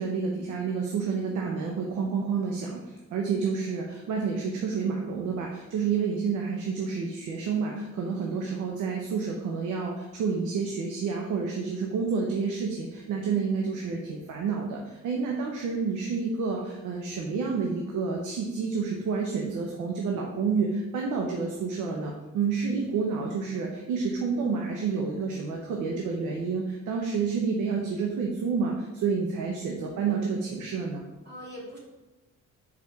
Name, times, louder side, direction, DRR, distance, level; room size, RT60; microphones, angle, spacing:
voice 1, 0.0-31.1, right 5 dB, 85° right, 0 dB, 0.8 m, -29 dB
voice 2, 31.2-31.8, equal, 35° right, -5 dB, 2.1 m, -44 dB
4.9 x 4.2 x 4.6 m, 1.1 s
cardioid pair, 90°, 30 cm